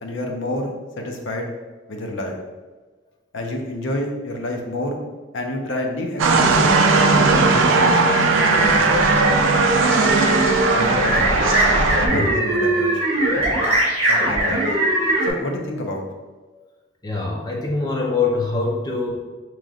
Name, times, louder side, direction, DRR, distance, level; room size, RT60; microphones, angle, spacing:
voice 1, 0.0-1.5 1.9-2.4 3.3-5.0 5.3-6.8 7.1-8.0 8.5-9.3 10.7-11.4 12.0-13.0 14.1-14.7 15.2-16.0, left 1 dB, 70° left, 2 dB, 0.6 m, -28 dB
sound 1, 6.2-12.1, right 3 dB, 80° right, 0.4 m, -18 dB
sound 2, 6.7-15.3, right 1 dB, 30° right, 1.4 m, -21 dB
voice 2, 13.6-14.3 17.0-19.1, left 3 dB, 20° left, -2 dB, 0.6 m, -24 dB
5.1 x 3.1 x 2.4 m, 1.3 s
head